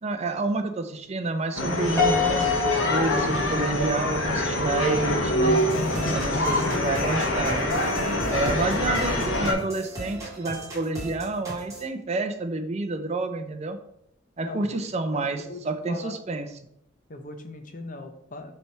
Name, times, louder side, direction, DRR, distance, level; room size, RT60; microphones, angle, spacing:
voice 1, 0.0-5.6 6.1-7.6 8.3-13.8 14.4-16.5, right 2 dB, 30° right, 7 dB, 0.5 m, -29 dB
sound 1, 1.6-9.5, left 1 dB, 65° left, 1.2 m, -25 dB
Piano, 2.0-4.2, left 7 dB, 10° left, 1.0 m, -28 dB
sound 2, 5.5-11.8, right 1 dB, 15° right, 2.6 m, -37 dB
voice 2, 8.0-9.2 14.4-14.8 15.1-15.6 15.9-16.1 17.1-18.5, left 2 dB, 40° left, 7 dB, 0.7 m, -39 dB
6.9 x 3.4 x 4.5 m, 0.74 s
head